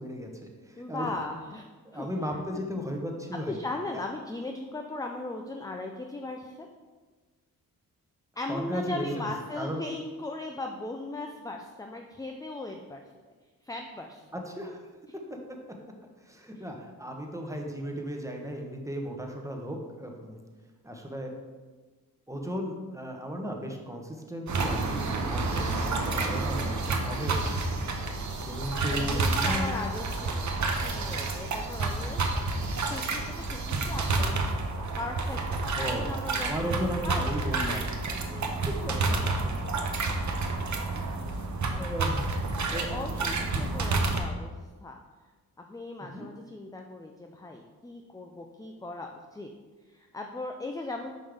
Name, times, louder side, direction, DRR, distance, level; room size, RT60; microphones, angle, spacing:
voice 1, 0.0-1.1 1.8-3.6 3.9-4.0 8.5-9.3 9.6-9.8 14.3-14.8 15.3-15.4 16.2-20.4 20.8-21.3 22.3-27.5 28.4-29.7 35.7-36.0 36.4-37.8 38.2-39.2 40.9-41.0 41.7-42.3 42.7-43.3 46.0-46.2, equal, 10° right, 1 dB, 1.1 m, -35 dB
voice 2, 0.8-1.7 1.9-2.1 2.5-2.6 3.3-6.7 8.4-13.0 13.6-14.2 16.5-16.6 28.9-32.2 32.9-33.2 33.5-34.6 35.0-36.5 37.0-37.3 38.3-38.4 42.9-44.5 44.8-45.0 45.6-49.5 49.9-51.1, left 2 dB, 10° left, 3 dB, 0.5 m, -38 dB
sound 1, 24.5-44.2, right 3 dB, 50° right, 0.9 m, -29 dB
5.4 x 5.3 x 3.5 m, 1.3 s
cardioid pair, 55°, 38 cm